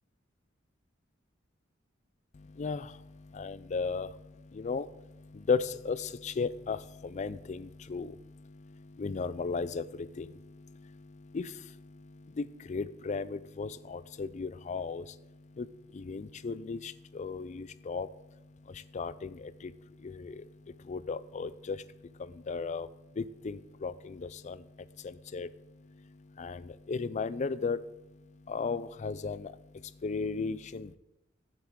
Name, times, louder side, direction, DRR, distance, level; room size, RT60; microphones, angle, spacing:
voice 1, 2.3-31.0, left 4 dB, 40° left, 16 dB, 0.4 m, -37 dB
15.0 x 8.1 x 3.7 m, 0.94 s
head